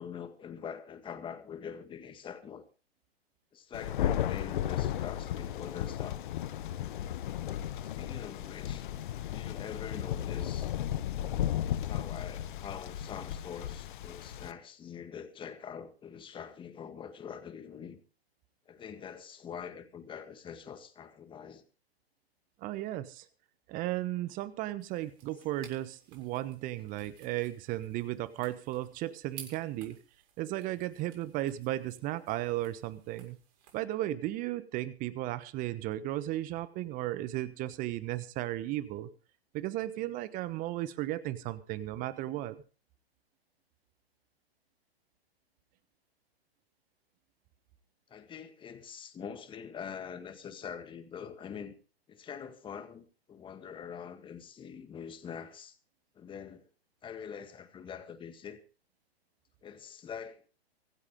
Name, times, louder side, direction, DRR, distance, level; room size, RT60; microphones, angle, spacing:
voice 1, 0.0-2.7 3.5-6.2 7.8-8.9 9.3-10.7 11.9-18.0 18.7-21.6 48.1-51.7 52.1-55.8 56.2-56.6 57.0-58.6 59.6-60.4, left 7 dB, 15° left, 1.9 m, -44 dB
Thunder, 3.7-14.5, left 11 dB, 50° left, 1.0 m, -35 dB
voice 2, 22.6-23.2 23.7-30.0 30.4-33.4 33.7-39.1 39.5-42.6, right 15 dB, 25° right, 1.1 m, -35 dB
sound 1, 24.8-33.8, right 8 dB, 40° right, 7.1 m, -56 dB
25.0 x 8.7 x 3.7 m
figure-of-eight pair, 120°, 31 cm